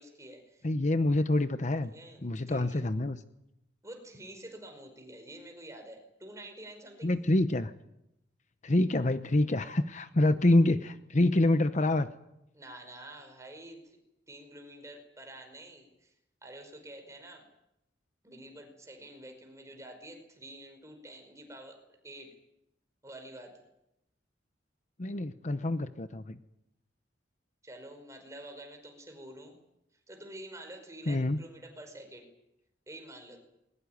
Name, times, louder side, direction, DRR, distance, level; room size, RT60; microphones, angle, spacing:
voice 1, 0.0-0.7 1.9-2.2 2.5-2.8 3.8-7.1 12.5-14.0 14.3-16.1 16.4-17.4 18.2-22.3 23.0-23.5 27.6-29.6 30.1-32.3 32.9-33.4, right 1 dB, 15° right, 4 dB, 5.3 m, -48 dB
voice 2, 0.6-1.9 2.2-3.2 7.0-7.7 8.6-12.1 25.0-26.4 31.1-31.4, left 2 dB, 40° left, 11 dB, 0.9 m, -26 dB
21.5 x 20.0 x 9.5 m, 0.86 s
head